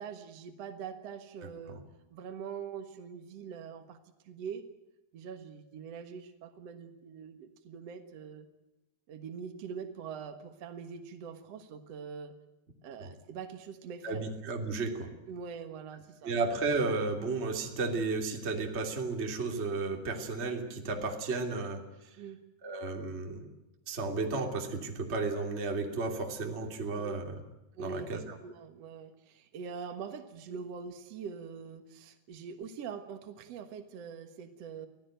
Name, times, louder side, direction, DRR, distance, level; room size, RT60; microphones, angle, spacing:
voice 1, 0.0-1.8 2.1-4.0 4.3-4.7 5.1-8.5 9.1-12.3 12.8-14.2 15.3-16.4 22.2-22.4 27.0-27.1 27.7-34.9, right 6 dB, 60° right, 6 dB, 1.7 m, -43 dB
voice 2, 14.0-15.1 16.2-21.8 22.6-23.5 23.9-27.4 27.8-28.4, right 3 dB, 20° right, 3 dB, 2.4 m, -33 dB
24.5 x 16.0 x 9.1 m, 0.98 s
omnidirectional pair, 4.9 m